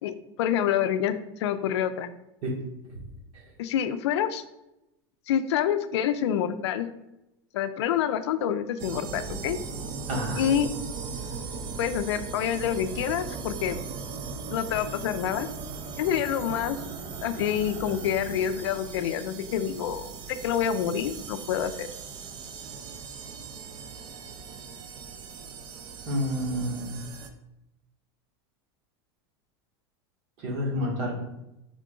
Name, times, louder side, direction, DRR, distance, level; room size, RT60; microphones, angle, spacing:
voice 1, 0.0-2.1 3.6-4.4 5.3-6.9 7.5-9.6 10.4-10.7 11.8-13.8 14.5-15.5 16.0-16.8 17.2-21.9, left 9 dB, 80° left, 11 dB, 0.4 m, -27 dB
sound 1, 8.8-27.3, right 5 dB, 30° right, 0.4 m, -38 dB
voice 2, 10.1-10.4 26.0-26.9 30.4-31.2, equal, 50° right, -1 dB, 1.4 m, -29 dB
3.7 x 3.7 x 3.6 m, 0.90 s
supercardioid pair, 135°, 14 cm